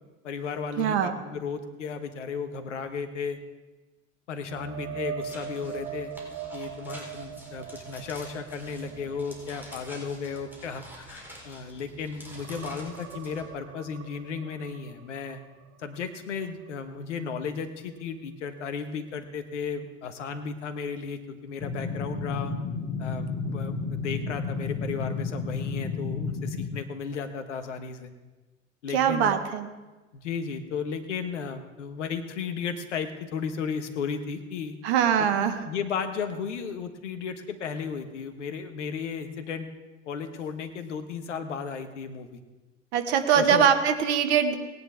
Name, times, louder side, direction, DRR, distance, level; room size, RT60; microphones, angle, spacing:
voice 1, 0.2-3.4 4.3-6.1 6.5-15.4 15.8-22.5 23.0-28.1 28.8-29.3 30.1-34.8 35.3-39.7 40.1-42.4 43.3-43.7, left 6 dB, 70° left, 8 dB, 1.4 m, -34 dB
voice 2, 0.8-1.2 28.9-29.7 34.8-35.6 42.9-44.5, right 8 dB, 60° right, 8 dB, 1.5 m, -22 dB
sound 1, 4.5-11.9 12.2-16.1 16.5-16.7 20.0-20.1, right 8 dB, 40° right, 1.0 m, -42 dB
sound 2, 5.2-13.5, equal, 5° right, 4.2 m, -48 dB
sound 3, 21.6-26.7, left 4 dB, 30° left, 1.9 m, -32 dB
19.5 x 10.0 x 3.6 m, 1.2 s
figure-of-eight pair, 70°, 37 cm